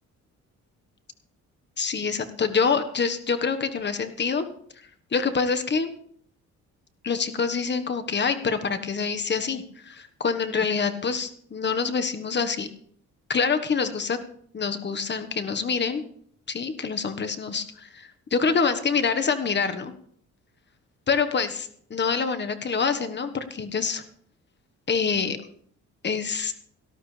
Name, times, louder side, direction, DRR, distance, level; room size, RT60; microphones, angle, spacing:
voice 1, 1.8-4.5 5.1-5.9 7.0-12.7 13.3-14.2 14.5-16.0 16.5-19.9 21.1-24.0 24.9-25.4 26.0-26.5, left 5 dB, 35° left, 9 dB, 1.4 m, -26 dB
18.0 x 12.5 x 3.3 m, 0.62 s
cardioid pair, 90°, 30 cm